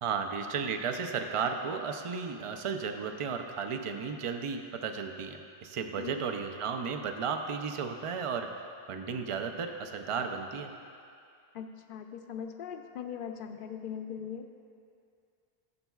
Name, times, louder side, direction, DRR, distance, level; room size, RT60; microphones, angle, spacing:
voice 1, 0.0-10.7, right 6 dB, 50° right, 5 dB, 0.4 m, -34 dB
voice 2, 11.5-14.5, left 8 dB, 65° left, 6 dB, 0.7 m, -40 dB
13.5 x 6.9 x 2.3 m, 2.4 s
omnidirectional pair, 1.0 m